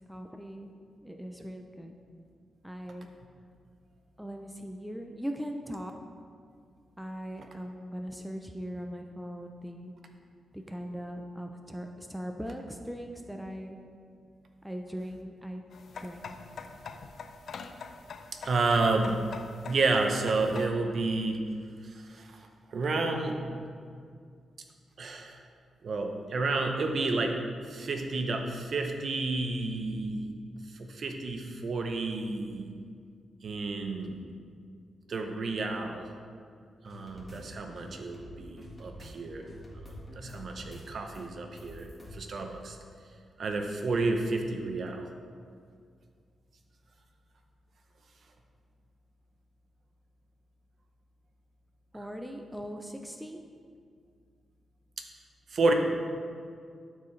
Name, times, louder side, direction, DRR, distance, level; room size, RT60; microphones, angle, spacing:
voice 1, 0.1-0.7 1.0-2.0 2.6-3.1 4.2-5.9 7.0-9.9 10.5-13.8 14.6-15.6 16.0-16.6 51.9-53.4, equal, 5° right, 3 dB, 0.5 m, -40 dB
sound 1, 15.7-20.7, left 5 dB, 65° left, 0.4 m, -44 dB
voice 2, 18.4-19.2 19.7-21.4 21.8-23.4 25.0-25.4 25.8-27.4 27.7-30.3 30.7-32.7 33.4-34.2 35.1-36.1 36.8-39.5 39.7-42.8 43.4-45.1 55.0-55.1 55.5-55.7, right 3 dB, 55° right, 4 dB, 0.7 m, -30 dB
sound 2, 36.9-37.4 37.7-39.1 39.4-40.8 41.1-42.2, equal, 15° left, 1.6 m, -47 dB
11.5 x 4.5 x 3.2 m, 2.1 s
cardioid pair, 110°, 0 cm